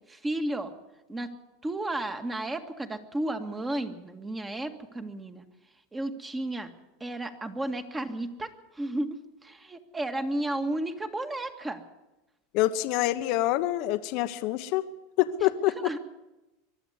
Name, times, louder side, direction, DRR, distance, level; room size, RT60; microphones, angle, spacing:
voice 1, 0.1-0.7 1.1-1.3 1.6-5.5 5.9-6.7 7.0-11.8 15.8-16.0, right 1 dB, 15° right, 7 dB, 1.9 m, -33 dB
voice 2, 12.5-14.9 15.2-15.8, left 14 dB, 55° left, 10 dB, 1.1 m, -26 dB
22.5 x 12.5 x 9.6 m, 1.0 s
supercardioid pair, 125°, 0 cm